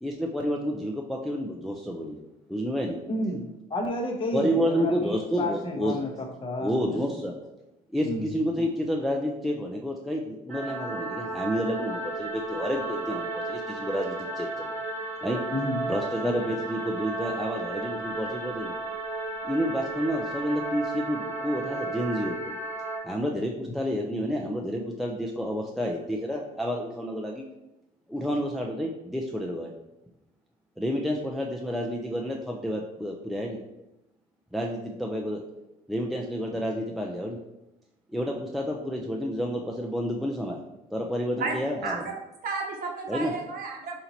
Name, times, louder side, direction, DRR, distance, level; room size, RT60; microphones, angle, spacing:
voice 1, 0.0-2.2 2.5-3.0 4.3-6.0 6.6-7.4 7.9-14.7 15.2-15.4 15.9-18.7 19.4-22.5 23.0-27.4 28.1-29.7 30.8-33.6 34.5-35.4 35.9-37.4 38.1-40.6 40.9-42.0 43.1-43.3, equal, ahead, -1 dB, 0.4 m, -30 dB
voice 2, 3.1-6.1 6.4-7.0 8.0-8.3 15.5-15.9, left 1 dB, 30° left, 3 dB, 0.8 m, -31 dB
sound 1, 10.5-23.0, right 2 dB, 85° right, 1.6 m, -33 dB
voice 3, 41.4-42.1 42.4-44.0, right 4 dB, 60° right, 1 dB, 1.0 m, -33 dB
4.3 x 2.9 x 3.9 m, 0.94 s
cardioid pair, 110°, 17 cm